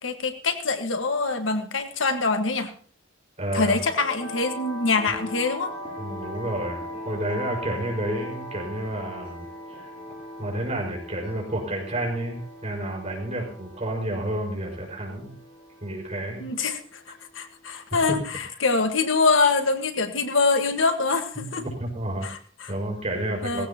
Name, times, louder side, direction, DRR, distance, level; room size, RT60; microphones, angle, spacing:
voice 1, 0.0-2.7 3.5-5.7 16.4-16.8 17.3-21.6 22.2-22.7 23.4-23.7, left 4 dB, 80° left, 7 dB, 1.6 m, -24 dB
voice 2, 3.4-3.8 6.0-9.8 10.4-15.3 15.8-16.5 18.1-18.2 21.3-22.3 22.7-23.7, right 1 dB, 35° right, 0 dB, 5.2 m, -30 dB
sound 1, 3.7-17.8, equal, 30° left, 7.7 m, -40 dB
18.5 x 16.0 x 2.9 m, 0.41 s
head